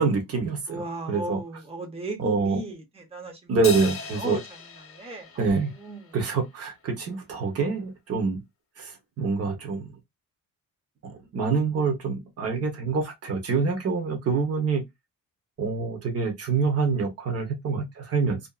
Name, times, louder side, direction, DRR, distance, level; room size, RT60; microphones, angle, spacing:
voice 1, 0.0-1.4 2.2-2.6 3.5-4.4 5.4-5.7 6.1-8.4 8.8-9.9 11.0-14.8 15.6-18.4, right 4 dB, 45° right, 1.0 m, -26 dB
voice 2, 0.7-3.5 4.2-4.4 4.9-6.2, right 2 dB, 15° right, 0.7 m, -36 dB
Crash cymbal, 3.6-6.3, left 4 dB, 40° left, 0.6 m, -37 dB
2.7 x 2.5 x 2.3 m
wide cardioid pair, 170°, 34 cm